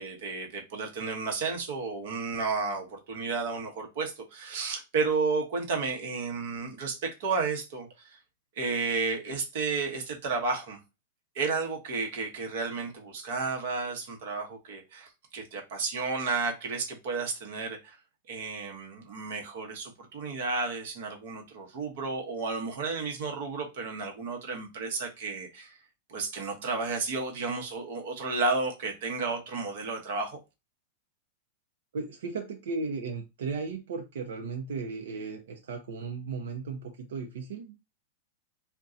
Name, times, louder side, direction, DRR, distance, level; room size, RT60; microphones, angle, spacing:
voice 1, 0.0-8.2 8.6-10.8 11.3-18.0 18.3-25.8 26.1-30.4, right 4 dB, 55° right, 0.9 m, -32 dB
voice 2, 31.9-37.8, right 4 dB, 80° right, 0.6 m, -36 dB
2.6 x 2.2 x 3.5 m
supercardioid pair, 170°, 0 cm